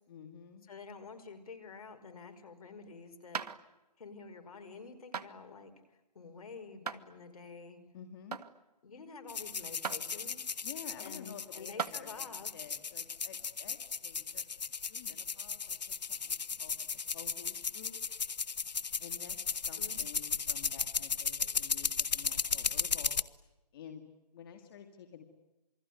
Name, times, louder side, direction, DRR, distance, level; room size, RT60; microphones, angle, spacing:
voice 1, 0.1-0.6 7.9-8.4 10.6-14.4 14.9-15.8 16.1-16.9 17.1-18.0 19.0-23.2 23.7-24.1 24.3-25.2, left 8 dB, 35° left, 5 dB, 2.3 m, -51 dB
voice 2, 0.7-3.4 4.0-7.8 8.8-10.4 11.0-12.5 19.8-20.0, left 4 dB, 60° left, 7 dB, 5.2 m, -49 dB
sound 1, 3.3-3.6 5.1-5.3 6.9-7.0 8.3-8.5 9.8-10.0 11.1-11.2 11.8-12.0 13.4-13.5, right 6 dB, 70° right, 1.8 m, -37 dB
sound 2, 9.3-23.2, left 6 dB, 85° left, 1.1 m, -36 dB
28.0 x 21.5 x 9.6 m, 1.0 s
hypercardioid pair, 160°, 21 cm